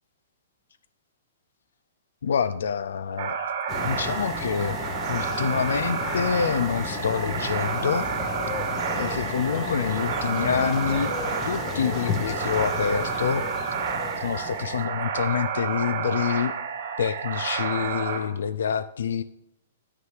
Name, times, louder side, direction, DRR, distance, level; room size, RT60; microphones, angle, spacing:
voice 1, 2.2-3.4 3.8-4.8 5.1-8.1 9.0-11.1 11.4-13.4 14.2-16.5 17.0-19.2, left 7 dB, 85° left, 12 dB, 0.3 m, -27 dB
sound 1, 3.2-18.2, right 7 dB, 60° right, 2.3 m, -30 dB
sound 2, 3.7-14.9, left 4 dB, 20° left, 0.7 m, -33 dB
9.7 x 9.2 x 3.3 m, 0.84 s
hypercardioid pair, 165°, 0 cm